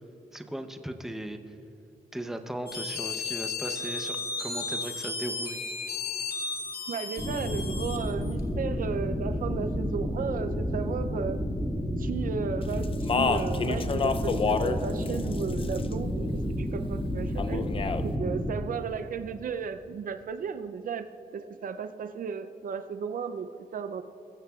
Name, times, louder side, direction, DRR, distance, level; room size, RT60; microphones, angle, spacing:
voice 1, 0.3-1.4 2.1-5.6, right 1 dB, 5° right, 6 dB, 0.7 m, -37 dB
sound 1, 2.7-8.4, left 4 dB, 80° left, 2.2 m, -34 dB
voice 2, 6.9-11.4 12.0-17.7 18.0-21.1 21.3-24.0, right 6 dB, 60° right, 10 dB, 0.5 m, -34 dB
sound 2, 7.2-18.5, equal, 15° left, 1.5 m, -31 dB
Speech, 12.8-14.8 15.1-15.9 17.4-18.0, left 5 dB, 35° left, 0.4 m, -28 dB
21.5 x 14.0 x 2.4 m, 3.0 s
wide cardioid pair, 160°, 16 cm